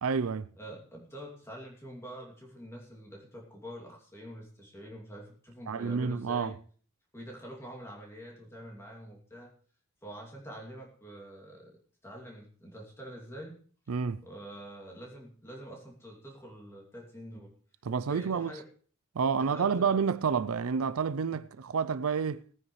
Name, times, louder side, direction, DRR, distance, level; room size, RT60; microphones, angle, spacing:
voice 1, 0.0-0.5 5.7-6.5 13.9-14.2 17.9-18.5 19.2-22.4, right 6 dB, 90° right, 0.5 m, -29 dB
voice 2, 0.6-6.6 7.1-9.5 10.0-13.6 14.2-17.5 18.1-18.6 19.3-19.9, equal, 10° left, 2.6 m, -46 dB
19.5 x 9.7 x 3.2 m
head